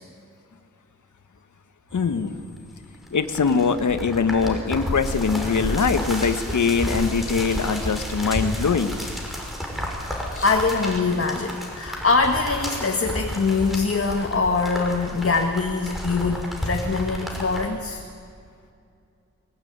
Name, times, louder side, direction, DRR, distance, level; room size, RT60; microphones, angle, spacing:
voice 1, 1.9-2.4 3.1-9.0 10.3-10.4, left 5 dB, 75° left, 9 dB, 1.6 m, -22 dB
sound 1, 1.9-17.6, equal, ahead, 5.8 m, -31 dB
voice 2, 10.4-18.0, left 4 dB, 50° left, 3 dB, 1.8 m, -23 dB
23.0 x 22.0 x 9.7 m, 2.3 s
wide cardioid pair, 130°, 30 cm